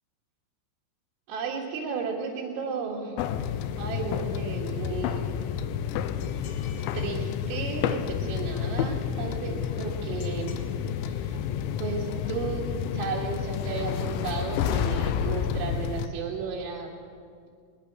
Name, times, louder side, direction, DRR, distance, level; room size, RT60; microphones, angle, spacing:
voice 1, 1.3-3.3 3.8-5.3 6.9-10.6 11.1-11.4 11.8-16.9, right 5 dB, 80° right, -3 dB, 4.3 m, -34 dB
sound 1, 3.2-16.1, left 8 dB, 80° left, 3.0 m, -30 dB
sound 2, 6.2-7.2 10.2-10.7, left 7 dB, 60° left, 3.1 m, -50 dB
21.0 x 20.5 x 6.1 m, 2.3 s
omnidirectional pair, 5.4 m